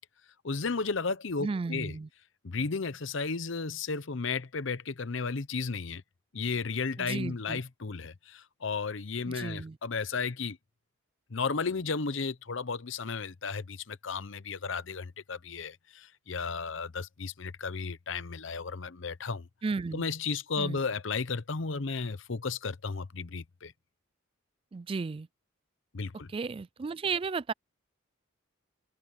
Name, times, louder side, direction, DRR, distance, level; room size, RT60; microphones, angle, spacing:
voice 1, 0.4-2.0 2.4-6.0 6.3-10.6 11.3-19.5 19.9-23.7 25.9-26.3, left 4 dB, 65° left, 0.8 m, -34 dB
voice 2, 1.4-2.1 7.0-7.6 9.3-9.8 19.6-20.0 20.6-20.8 24.7-25.3 26.3-27.5, right 4 dB, 25° right, 0.3 m, -34 dB
head